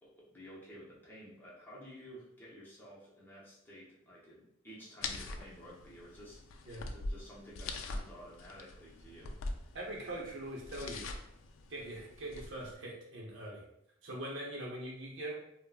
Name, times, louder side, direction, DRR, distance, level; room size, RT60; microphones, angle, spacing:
voice 1, 0.0-6.4 6.8-9.4, equal, 10° left, -7 dB, 0.6 m, -52 dB
sound 1, 5.0-12.7, left 3 dB, 90° left, 0.3 m, -44 dB
voice 2, 9.7-11.1 11.7-13.6 14.0-15.4, right 1 dB, 65° right, -3 dB, 0.8 m, -42 dB
3.5 x 2.0 x 2.3 m, 0.78 s
head